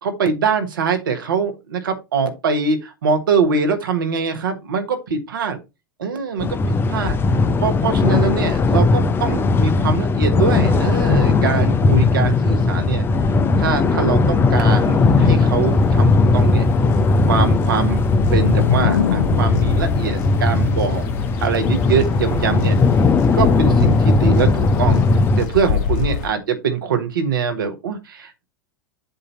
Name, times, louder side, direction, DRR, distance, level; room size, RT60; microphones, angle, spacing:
voice 1, 0.0-5.6 6.0-7.2 7.6-13.0 13.6-16.7 17.2-18.0 18.3-21.1 21.4-22.8 23.3-25.0 25.4-28.4, right 5 dB, 75° right, 6 dB, 1.5 m, -23 dB
sound 1, 6.4-25.5, left 3 dB, 20° left, 0.6 m, -17 dB
sound 2, 14.7-26.3, left 6 dB, 50° left, 1.2 m, -29 dB
sound 3, 17.9-21.6, left 7 dB, 85° left, 0.4 m, -24 dB
7.8 x 2.8 x 5.6 m, 0.25 s
hypercardioid pair, 95°, 11 cm